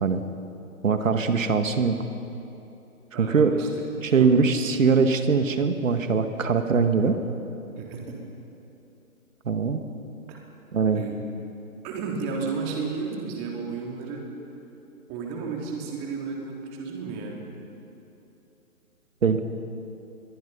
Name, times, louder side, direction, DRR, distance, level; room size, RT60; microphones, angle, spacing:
voice 1, 0.8-2.0 3.1-3.6 4.0-7.2 9.5-9.8 10.7-11.0 19.2-19.4, right 5 dB, 60° right, 7 dB, 2.0 m, -22 dB
voice 2, 3.1-3.7 4.2-4.3 7.8-8.2 10.3-10.4 10.9-11.2 11.8-14.3 15.1-17.4, right 5 dB, 20° right, 0 dB, 3.0 m, -33 dB
25.5 x 22.0 x 5.6 m, 2.9 s
figure-of-eight pair, 150°, 44 cm